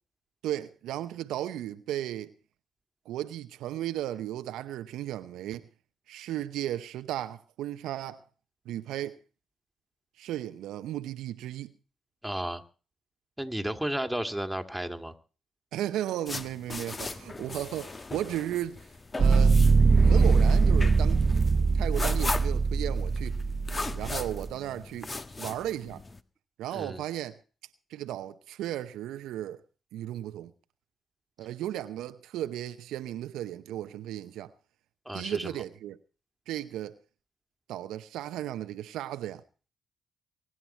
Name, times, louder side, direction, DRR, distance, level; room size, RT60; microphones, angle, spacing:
voice 1, 0.4-2.3 3.1-5.7 6.1-8.2 8.7-9.2 10.2-11.7 15.7-18.8 19.1-19.6 20.0-21.3 21.7-23.4 23.9-25.1 25.4-26.0 26.6-27.4 27.9-29.6 29.9-30.5 31.4-34.5 35.1-36.0 36.5-37.0 37.7-39.4, right 12 dB, 75° right, 0.8 m, -35 dB
voice 2, 12.2-12.6 13.4-15.1 26.7-27.0 35.1-35.6, right 1 dB, 5° right, 2.5 m, -33 dB
sound 1, 16.3-26.2, left 3 dB, 30° left, 1.4 m, -38 dB
sound 2, 19.2-24.5, right 4 dB, 45° right, 0.9 m, -22 dB
24.0 x 9.8 x 4.4 m
hypercardioid pair, 45°, 0 cm